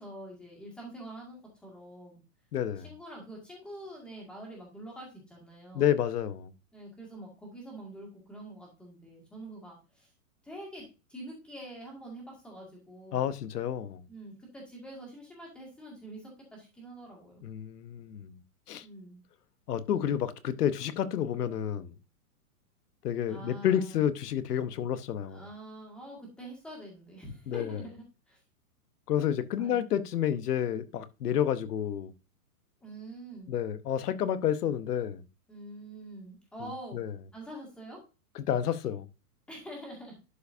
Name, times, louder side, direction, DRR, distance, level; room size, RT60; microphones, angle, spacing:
voice 1, 0.0-2.2 2.8-5.9 6.7-10.1 10.4-13.3 14.1-17.4 18.8-19.2 23.3-24.1 25.2-28.4 29.6-29.8 32.8-33.5 35.5-37.1 37.3-38.0 39.5-40.2, right 1 dB, ahead, 2.0 m, -45 dB
voice 2, 2.5-2.9 5.7-6.5 13.1-14.0 17.4-18.3 18.7-18.8 19.7-22.0 23.0-25.4 27.5-27.8 29.1-32.1 33.5-35.2 36.9-37.1 38.3-39.1, left 10 dB, 90° left, 1.0 m, -30 dB
11.5 x 4.7 x 2.6 m
hypercardioid pair, 170°, 45 cm